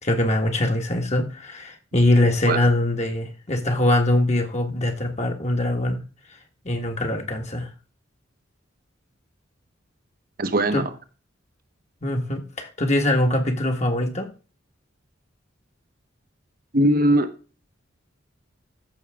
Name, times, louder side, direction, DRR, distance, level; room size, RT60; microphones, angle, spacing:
voice 1, 0.0-6.0 6.6-7.7 10.7-10.8 12.0-14.3, left 1 dB, 35° left, 3 dB, 1.5 m, -22 dB
voice 2, 10.4-10.9 16.7-17.3, right 1 dB, 45° right, 10 dB, 1.0 m, -20 dB
13.5 x 6.2 x 3.5 m, 0.35 s
head